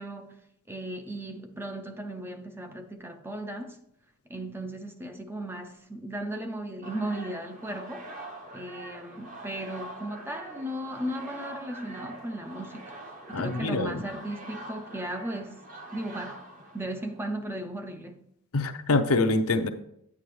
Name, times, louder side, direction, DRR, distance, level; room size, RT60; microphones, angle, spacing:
voice 1, 0.0-3.8 4.3-8.1 8.5-13.0 13.3-15.7 15.9-16.4 16.7-18.3, right 1 dB, 10° right, 0.5 m, -36 dB
sound 1, 6.8-17.3, right 2 dB, 35° right, 1.1 m, -44 dB
voice 2, 13.3-14.0 18.5-19.7, left 3 dB, 75° left, 0.6 m, -25 dB
9.4 x 8.5 x 3.1 m
head